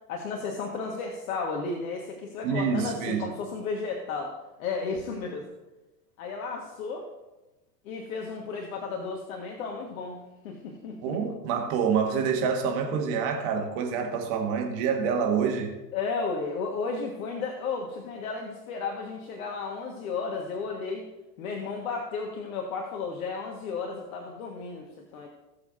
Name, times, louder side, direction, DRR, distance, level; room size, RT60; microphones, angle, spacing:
voice 1, 0.1-4.3 4.6-5.4 6.2-7.1 7.9-11.2 15.9-21.1 21.4-24.9 25.1-25.3, left 4 dB, 55° left, 1 dB, 1.7 m, -33 dB
voice 2, 2.4-3.3 11.0-15.7, right 6 dB, 45° right, 3 dB, 1.7 m, -27 dB
19.0 x 7.3 x 2.7 m, 1.0 s
figure-of-eight pair, 95°, 50 cm